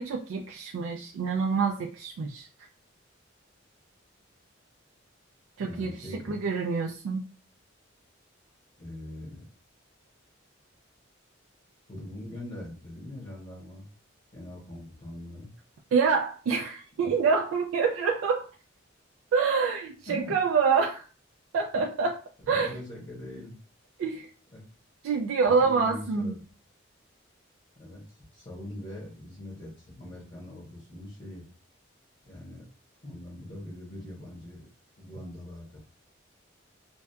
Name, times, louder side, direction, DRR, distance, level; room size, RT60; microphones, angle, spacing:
voice 1, 0.0-2.5 5.6-7.2 15.9-18.5 19.3-21.1 21.5-22.2 22.5-22.7 24.0-24.3 25.0-26.3, right 5 dB, 90° right, 1 dB, 0.3 m, -26 dB
voice 2, 5.6-6.4 8.8-9.4 11.9-13.9 14.3-15.5 17.0-17.1 20.0-20.4 22.4-23.5 24.5-24.6 25.6-26.4 27.8-31.4 32.2-32.7 33.0-34.7 35.0-35.8, left 1 dB, 40° left, -5 dB, 0.8 m, -42 dB
2.6 x 2.2 x 2.2 m, 0.38 s
head